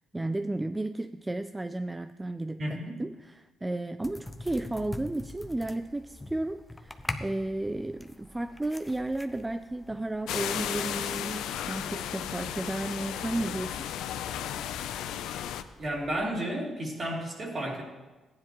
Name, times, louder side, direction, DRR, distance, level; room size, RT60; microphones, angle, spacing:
voice 1, 0.0-13.8, right 2 dB, 15° right, 10 dB, 0.3 m, -33 dB
voice 2, 2.6-3.0 15.8-17.8, right 1 dB, 40° right, -2 dB, 2.8 m, -32 dB
sound 1, 4.0-16.3, left 1 dB, 10° left, 0.7 m, -45 dB
sound 2, 10.3-15.6, left 10 dB, 90° left, 0.5 m, -34 dB
14.5 x 10.0 x 3.0 m, 1.2 s
cardioid pair, 90°, 0 cm